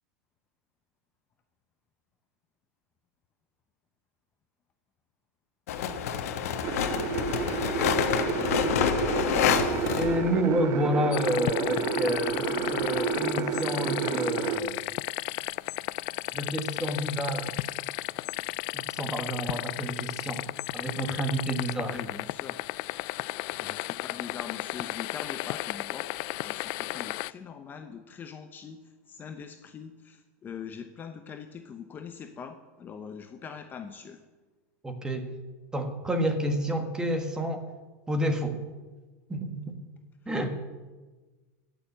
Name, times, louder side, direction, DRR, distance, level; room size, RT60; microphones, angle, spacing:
sound 1, 5.7-10.6 11.7-13.1, left 8 dB, 75° left, 1.3 m, -28 dB
sound 2, 6.6-14.6, right 6 dB, 35° right, 1.0 m, -30 dB
voice 1, 10.0-14.9 16.3-17.5 18.7-20.4 20.7-22.0 34.8-35.3 35.7-37.7 38.1-38.6 39.3-39.8 40.2-40.5, right 1 dB, 10° right, 5 dB, 1.7 m, -29 dB
sound 3, 11.1-27.3, left 20 dB, 50° left, 0.3 m, -34 dB
voice 2, 19.4-19.9 21.9-22.6 23.6-26.1 26.4-34.2, left 6 dB, 25° left, 7 dB, 0.8 m, -43 dB
14.5 x 7.1 x 8.4 m, 1.3 s
supercardioid pair, 135°, 8 cm